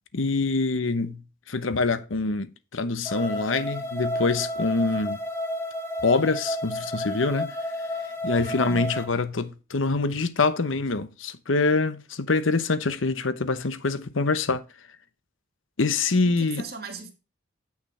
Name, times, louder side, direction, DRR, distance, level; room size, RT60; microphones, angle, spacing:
voice 1, 0.1-1.2 1.5-5.2 6.0-7.5 8.2-14.6 15.8-16.6, left 3 dB, 90° left, 0.9 m, -25 dB
sound 1, 3.0-9.0, left 1 dB, 15° left, 1.2 m, -31 dB
voice 2, 16.2-17.1, right 3 dB, 50° right, 1.7 m, -38 dB
8.6 x 6.0 x 4.2 m
head